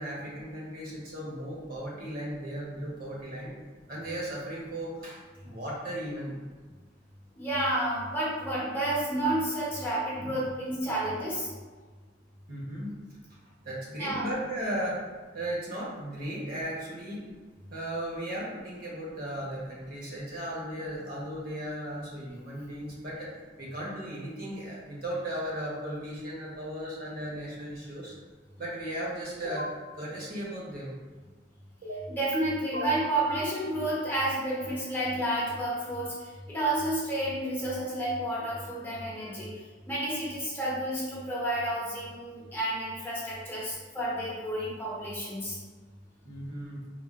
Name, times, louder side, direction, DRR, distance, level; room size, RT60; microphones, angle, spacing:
voice 1, 0.0-3.5 3.9-6.4 10.2-10.4 12.5-12.9 13.6-15.0 15.3-17.2 17.7-23.3 23.6-28.1 28.6-29.7 29.9-30.9 46.2-46.8, right 1 dB, 50° right, -5 dB, 0.9 m, -36 dB
voice 2, 7.4-11.5 14.0-14.3 32.1-39.5 39.8-45.6, right 1 dB, 10° left, -7 dB, 0.7 m, -30 dB
sound 1, 29.4-29.8 31.8-32.4 32.7-33.5, equal, 80° right, 0.8 m, -37 dB
3.7 x 2.3 x 2.4 m, 1.4 s
head